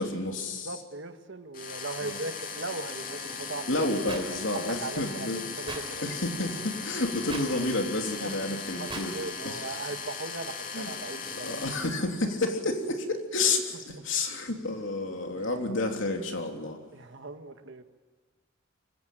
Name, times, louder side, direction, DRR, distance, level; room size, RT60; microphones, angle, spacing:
voice 1, 0.0-0.7 2.0-2.2 3.7-5.4 6.0-9.1 9.4-9.6 10.7-10.9 11.4-16.8, left 2 dB, 65° left, 3 dB, 3.3 m, -30 dB
voice 2, 0.5-3.8 4.5-6.2 8.2-11.7 13.9-14.0 15.3-15.5 16.9-17.8, right 3 dB, 60° right, 7 dB, 1.7 m, -39 dB
sound 1, 1.5-11.9, left 5 dB, 45° left, 2.6 m, -38 dB
sound 2, 4.1-4.2 5.7-5.8 7.3-7.4 8.9-9.0, right 4 dB, 25° right, 3.8 m, -37 dB
24.0 x 16.5 x 9.1 m, 1.5 s
head